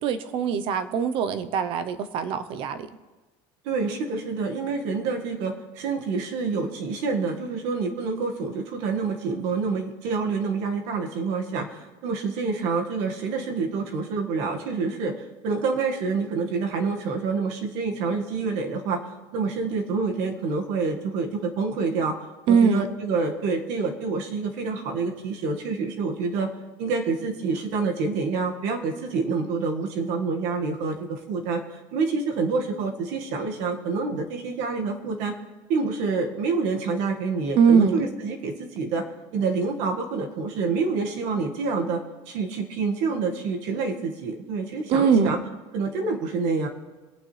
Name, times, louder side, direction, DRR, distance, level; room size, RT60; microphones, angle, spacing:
voice 1, 0.0-2.8 22.5-22.9 37.6-38.0 44.9-45.3, right 6 dB, 40° right, 11 dB, 0.8 m, -21 dB
voice 2, 3.6-22.2 22.5-26.5 26.8-35.3 35.7-39.0 39.3-42.0 42.3-45.4 45.7-46.7, right 4 dB, 55° right, 3 dB, 1.8 m, -27 dB
23.5 x 9.0 x 3.3 m, 1.2 s
cardioid pair, 175°, 13 cm